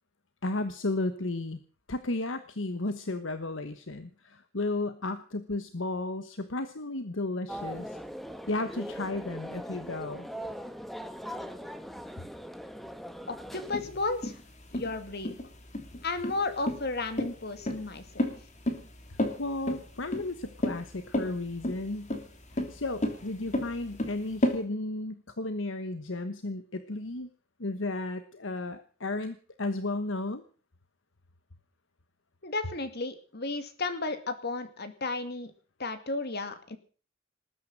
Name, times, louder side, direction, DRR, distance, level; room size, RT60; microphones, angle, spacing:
voice 1, 0.4-1.6 1.9-8.0 8.5-10.3 19.4-22.1 22.5-27.3 27.6-30.4, left 2 dB, 70° left, 10 dB, 1.2 m, -34 dB
sound 1, 7.5-13.8, equal, ahead, 1.4 m, -40 dB
voice 2, 13.3-14.4 14.7-15.4 16.0-18.3 32.4-35.5 35.8-36.8, left 3 dB, 55° left, 9 dB, 2.4 m, -33 dB
sound 2, 13.7-24.6, left 1 dB, 40° left, 3.0 m, -32 dB
20.0 x 9.7 x 7.5 m, 0.41 s
head